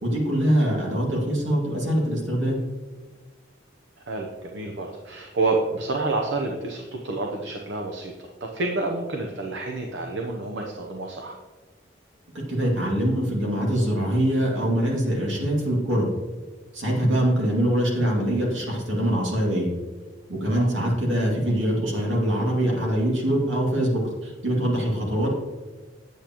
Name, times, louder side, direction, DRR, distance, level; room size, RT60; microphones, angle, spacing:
voice 1, 0.0-2.6 12.5-16.1 16.7-19.7 20.3-25.3, right 1 dB, 85° right, -2 dB, 2.3 m, -23 dB
voice 2, 4.1-8.1 8.4-11.4 20.5-20.7, right 3 dB, 70° right, 1 dB, 0.8 m, -28 dB
8.4 x 8.2 x 3.0 m, 1.4 s
head